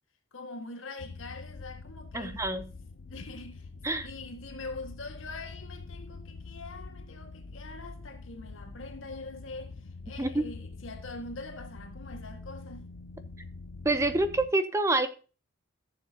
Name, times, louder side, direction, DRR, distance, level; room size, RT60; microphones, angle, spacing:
voice 1, 0.3-2.4 3.1-3.7 4.0-12.9, left 3 dB, 80° left, 1.7 m, -43 dB
sound 1, 1.0-14.5, left 3 dB, 60° left, 0.6 m, -45 dB
voice 2, 2.1-2.7 3.8-4.1 10.2-10.4 13.8-15.1, right 2 dB, 15° right, 0.7 m, -27 dB
14.5 x 7.0 x 2.8 m
head